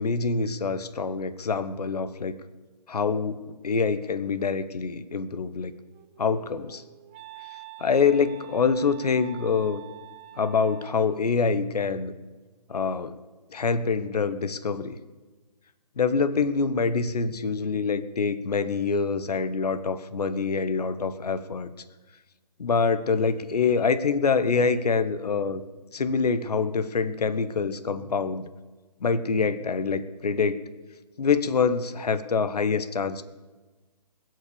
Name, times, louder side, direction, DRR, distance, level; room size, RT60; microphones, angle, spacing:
voice 1, 0.0-2.4 2.9-5.7 6.2-6.8 7.8-9.8 10.4-12.1 12.7-13.2 13.5-15.0 16.0-21.7 22.6-25.6 25.9-28.5 29.0-30.6 31.2-33.2, left 5 dB, 65° left, 13 dB, 1.1 m, -25 dB
Wind instrument woodwind instrument, 5.7-11.2, right 15 dB, 15° right, 0.6 m, -46 dB
21.5 x 8.2 x 6.9 m, 1.3 s
figure-of-eight pair, 140°, 21 cm